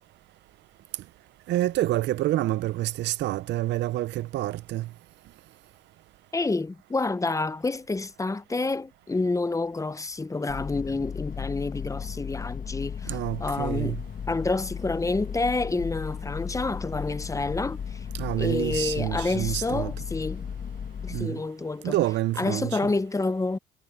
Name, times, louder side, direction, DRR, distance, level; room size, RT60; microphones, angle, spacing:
voice 1, 1.5-4.8 13.1-14.0 18.1-19.9 21.1-21.3 21.8-22.8, right 15 dB, 70° right, 0.5 m, -27 dB
voice 2, 6.3-14.0 14.3-18.1 18.4-20.4 21.0-22.0 22.4-23.6, left 3 dB, 15° left, 0.8 m, -28 dB
sound 1, 10.5-21.2, left 7 dB, 45° left, 1.4 m, -35 dB
cardioid pair, 80°, 19 cm